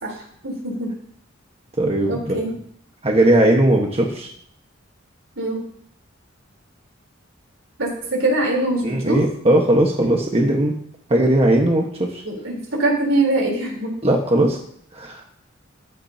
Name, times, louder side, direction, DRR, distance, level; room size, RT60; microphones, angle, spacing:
voice 1, 0.0-0.9 2.1-2.6 5.4-5.7 7.8-9.2 12.2-14.0, right 2 dB, 75° right, 0 dB, 3.9 m, -23 dB
voice 2, 1.8-2.3 3.0-4.3 8.8-10.7 11.1-12.2 14.0-14.6 14.9-15.2, right 1 dB, 30° right, 0 dB, 1.4 m, -18 dB
14.5 x 12.5 x 2.9 m, 0.64 s
head